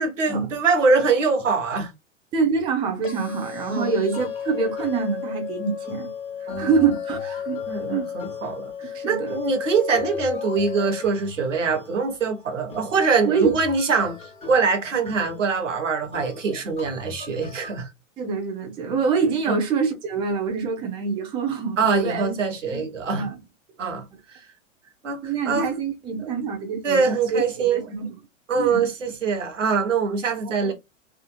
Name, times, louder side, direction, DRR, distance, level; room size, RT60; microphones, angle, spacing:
voice 1, 0.0-1.9 3.7-3.9 6.5-6.7 7.7-17.9 19.5-19.6 21.8-23.3 23.8-24.0 25.0-25.7 26.2-26.3 26.8-27.9 28.5-30.7, right 4 dB, 75° right, 0.9 m, -23 dB
voice 2, 2.3-6.1 6.4-7.2 7.4-7.6 7.9-8.1 8.9-9.4 13.2-13.6 18.2-22.4 22.7-23.4 25.2-28.1 28.5-28.9 30.4-30.7, right 5 dB, 15° right, 0.4 m, -25 dB
sound 1, 3.0-11.0, left 8 dB, 75° left, 0.7 m, -33 dB
sound 2, 4.1-17.8, left 5 dB, 15° left, 1.0 m, -44 dB
2.7 x 2.4 x 2.2 m
figure-of-eight pair, 95°, 38 cm